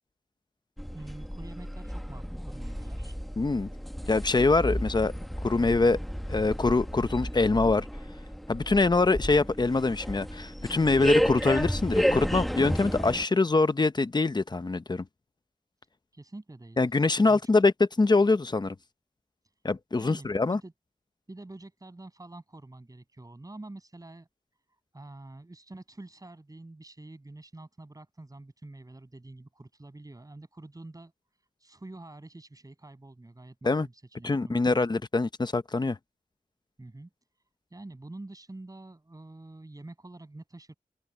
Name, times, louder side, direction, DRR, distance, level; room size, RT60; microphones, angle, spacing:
sound 1, 0.8-13.2, equal, ahead, 1.3 m, -32 dB
voice 1, 0.9-3.2 16.1-17.5 20.0-20.7 21.3-24.3 24.9-34.8 36.8-37.1 37.7-40.7, right 2 dB, 25° right, 7.3 m, -47 dB
voice 2, 3.4-3.7 4.1-5.1 5.4-6.0 6.3-7.9 8.5-15.0 16.8-18.7 19.6-20.6 33.6-33.9 34.2-36.0, left 3 dB, 30° left, 0.8 m, -24 dB
open air
wide cardioid pair, 115°, 15 cm